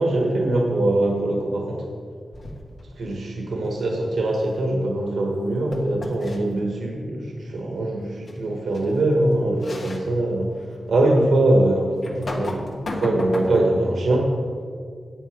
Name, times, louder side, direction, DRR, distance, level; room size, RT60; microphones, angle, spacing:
voice 1, 0.0-1.8 3.0-10.5 10.9-14.3, right 1 dB, 85° right, 0 dB, 1.5 m, -22 dB
sound 1, 2.3-2.8 5.7-6.4 8.3-8.4 8.7-8.9 9.6-10.0 10.6-10.7 12.0-13.8, left 2 dB, 50° left, 1.4 m, -33 dB
9.2 x 8.8 x 5.1 m, 2.1 s
wide cardioid pair, 150°, 0 cm